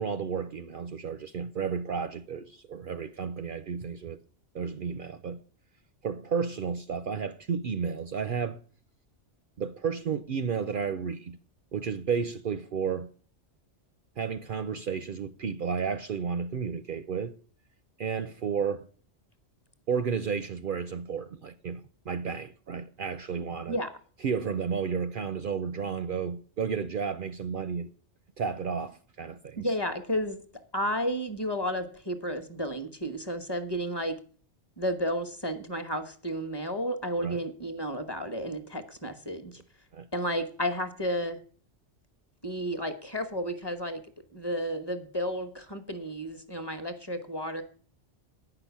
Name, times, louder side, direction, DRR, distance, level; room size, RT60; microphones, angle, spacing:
voice 1, 0.0-4.2 4.5-5.4 6.0-8.6 9.6-11.4 11.7-13.1 14.2-17.3 18.0-18.9 19.9-23.8 24.2-27.9 28.4-29.7 37.2-37.4 39.9-40.1, right 6 dB, 55° right, 0.7 m, -32 dB
voice 2, 29.6-30.4 30.7-34.2 34.8-39.6 40.1-41.4 42.4-44.0 44.3-47.6, equal, 20° left, 1.1 m, -32 dB
9.5 x 5.9 x 8.2 m
omnidirectional pair, 1.2 m